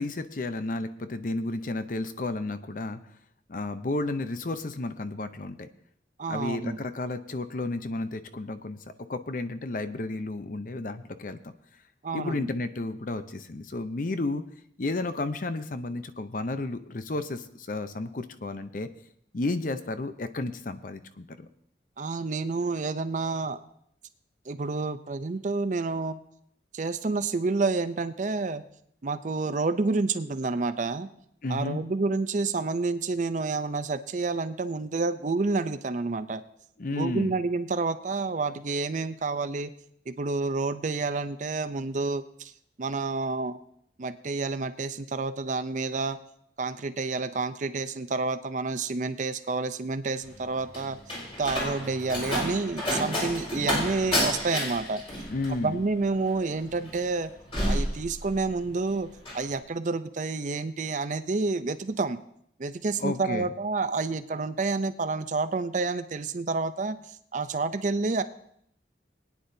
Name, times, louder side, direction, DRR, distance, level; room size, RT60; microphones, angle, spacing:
voice 1, 0.0-3.0 3.5-5.7 6.3-11.5 12.1-14.4 14.8-18.9 19.3-21.3 31.4-31.8 36.8-37.3 55.3-55.8 63.0-63.5, left 2 dB, 50° left, 11 dB, 0.6 m, -32 dB
voice 2, 6.2-6.8 12.0-12.4 22.0-23.6 24.5-26.2 26.7-28.6 29.0-31.1 31.5-36.4 36.9-39.7 40.1-42.5 42.8-43.6 44.0-46.2 46.6-51.0 51.4-55.0 55.5-57.3 57.7-59.1 59.3-62.2 62.6-67.0 67.3-68.2, right 3 dB, 45° right, 12 dB, 0.5 m, -29 dB
Slam, 50.2-58.7 59.0-59.5, left 1 dB, 35° left, 4.8 m, -31 dB
21.0 x 9.6 x 2.7 m, 0.69 s
head